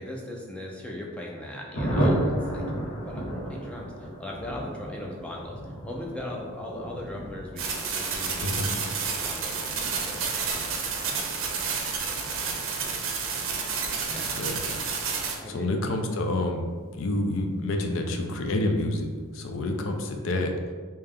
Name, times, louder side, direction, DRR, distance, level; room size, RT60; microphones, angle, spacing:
voice 1, 0.0-2.6 3.0-8.7 9.1-11.1 12.1-12.8 13.7-13.8 14.0-14.2 15.4-15.7, left 1 dB, 5° left, -2 dB, 0.4 m, -39 dB
Thunder, 1.7-17.9 18.1-18.2 18.5-18.7 18.9-19.3, equal, 80° left, 1.2 m, -35 dB
sound 1, 7.6-15.4, right 5 dB, 60° right, 0.6 m, -30 dB
voice 2, 15.5-19.1 19.3-20.5, left 1 dB, 65° left, 4 dB, 0.5 m, -28 dB
3.3 x 2.8 x 3.6 m, 1.5 s
head